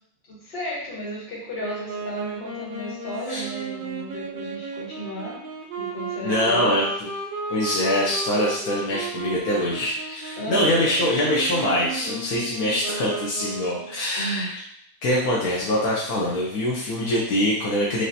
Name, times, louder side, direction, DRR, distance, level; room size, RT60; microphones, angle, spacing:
voice 1, 0.3-5.4 5.8-6.8 10.4-10.8 14.2-14.5, equal, 40° left, -7 dB, 1.8 m, -34 dB
Wind instrument woodwind instrument, 1.6-14.0, right 3 dB, 60° right, 0.5 m, -34 dB
voice 2, 6.2-6.8 7.5-14.5 15.0-18.0, left 1 dB, 75° left, -6 dB, 1.3 m, -24 dB
4.9 x 2.8 x 2.7 m, 0.72 s
omnidirectional pair, 1.6 m